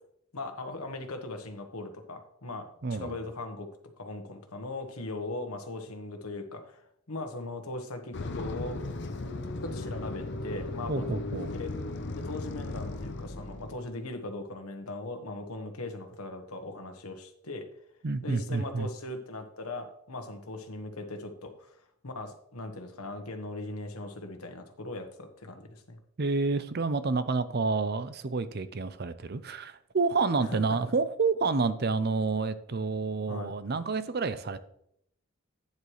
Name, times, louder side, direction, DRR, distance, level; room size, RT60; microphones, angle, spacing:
voice 1, 0.3-3.7 4.0-8.8 9.6-11.2 11.5-11.7 12.1-17.7 18.2-26.0 30.5-30.8 33.3-33.5, left 2 dB, 90° left, 6 dB, 1.3 m, -39 dB
voice 2, 2.8-3.2 10.9-11.5 18.0-18.9 26.2-34.6, right 4 dB, 45° right, 13 dB, 0.5 m, -29 dB
sound 1, 8.1-13.9, left 2 dB, 55° left, 0.7 m, -36 dB
9.4 x 7.9 x 3.2 m, 0.72 s
head